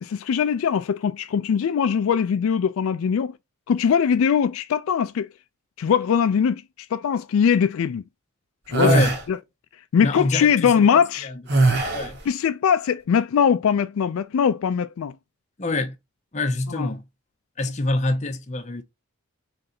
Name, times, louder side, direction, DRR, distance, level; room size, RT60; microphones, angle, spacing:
voice 1, 0.0-3.4 3.7-5.3 5.8-6.6 6.9-8.0 8.7-8.9 9.3-9.4 9.9-11.3 12.3-15.1 16.7-16.9, left 7 dB, 70° left, 0.3 m, -21 dB
sound 1, 8.7-9.2 11.5-12.2, right 2 dB, 50° right, 1.2 m, -20 dB
voice 2, 8.8-9.2 10.0-11.3 11.9-12.2 15.6-16.0 16.3-17.0 17.6-18.8, left 2 dB, 30° left, 0.6 m, -26 dB
3.9 x 3.2 x 2.8 m
head